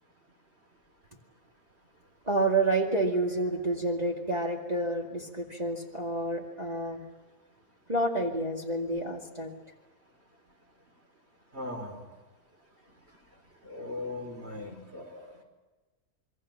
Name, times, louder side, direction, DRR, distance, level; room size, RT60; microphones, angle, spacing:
voice 1, 2.3-7.0 7.9-9.5, right 2 dB, 30° right, -1 dB, 2.4 m, -29 dB
voice 2, 11.5-12.0 13.6-15.3, left 2 dB, 45° right, 2 dB, 5.0 m, -39 dB
28.5 x 22.5 x 7.5 m, 1.2 s
omnidirectional pair, 1.5 m